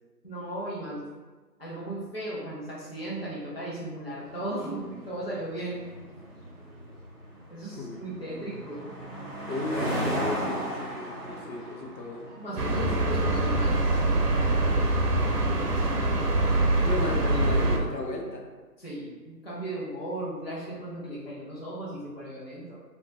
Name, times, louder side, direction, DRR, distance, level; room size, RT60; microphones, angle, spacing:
voice 1, 0.2-1.2 1.6-5.8 7.5-8.9 12.4-14.0 16.9-17.2 18.8-22.8, right 1 dB, 40° left, -8 dB, 0.5 m, -36 dB
sound 1, 4.2-17.7, equal, ahead, 1.3 m, -37 dB
voice 2, 7.8-8.2 9.5-13.0 16.8-18.5, left 2 dB, 85° left, 1 dB, 0.7 m, -35 dB
sound 2, 12.6-17.8, right 2 dB, 70° right, 0.6 m, -24 dB
2.7 x 2.1 x 2.7 m, 1.3 s
figure-of-eight pair, 165°, 49 cm